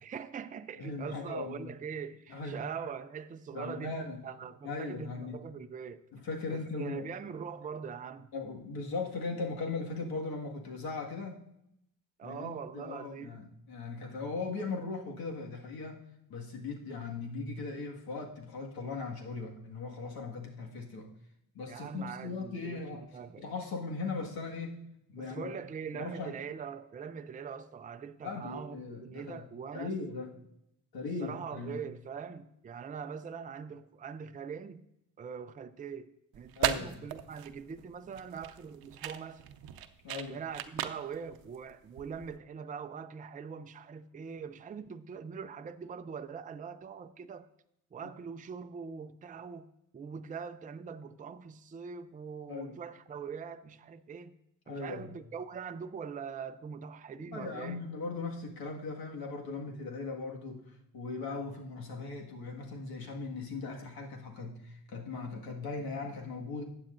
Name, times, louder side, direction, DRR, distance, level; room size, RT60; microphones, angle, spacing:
voice 1, 0.0-4.0 4.2-6.0 6.5-8.3 12.2-13.4 21.7-23.4 25.2-29.9 31.2-34.8 35.2-36.1 36.3-39.4 40.3-47.5 47.9-54.4 54.7-57.8, right 6 dB, 25° right, 0.4 m, -42 dB
voice 2, 0.8-1.7 2.3-2.6 3.5-4.2 4.6-5.4 6.1-7.1 8.3-11.4 12.2-16.0 16.3-21.1 21.5-23.0 23.4-25.6 25.9-26.4 28.2-29.5 29.7-30.3 30.9-31.8 36.6-37.1 40.0-40.4 48.0-48.1 52.5-52.8 54.7-55.1 57.2-66.6, left 4 dB, 75° left, 1.9 m, -39 dB
sound 1, 36.3-42.4, right 11 dB, 80° right, 0.7 m, -38 dB
14.5 x 8.8 x 2.6 m
cardioid pair, 105°, 36 cm